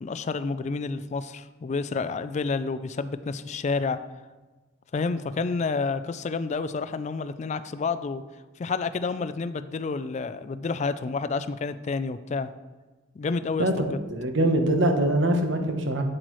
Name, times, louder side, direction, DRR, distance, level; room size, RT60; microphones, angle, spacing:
voice 1, 0.0-4.0 4.9-8.2 8.6-12.5 13.1-14.0, left 4 dB, 35° left, 12 dB, 0.3 m, -29 dB
voice 2, 14.1-16.0, right 1 dB, 65° right, 5 dB, 1.0 m, -23 dB
8.1 x 7.7 x 3.1 m, 1.3 s
head